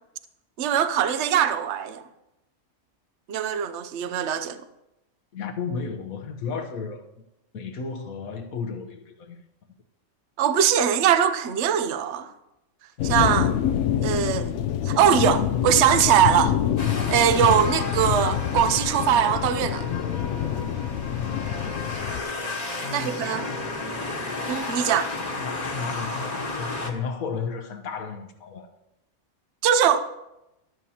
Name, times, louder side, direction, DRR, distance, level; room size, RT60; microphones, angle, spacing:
voice 1, 0.6-2.0 3.3-4.6 10.4-12.3 13.0-13.5 14.0-14.5 14.8-16.6 17.1-19.8 22.9-23.4 24.4-25.1 29.6-30.0, right 9 dB, 60° right, 0.9 m, -21 dB
voice 2, 5.3-7.0 7.5-9.4 22.8-23.8 25.0-28.7, left 5 dB, 85° left, 1.4 m, -33 dB
sound 1, 13.0-22.2, left 10 dB, 70° left, 0.8 m, -26 dB
sound 2, 16.8-26.9, left 3 dB, 30° left, 1.3 m, -33 dB
14.0 x 12.5 x 2.9 m
omnidirectional pair, 1.4 m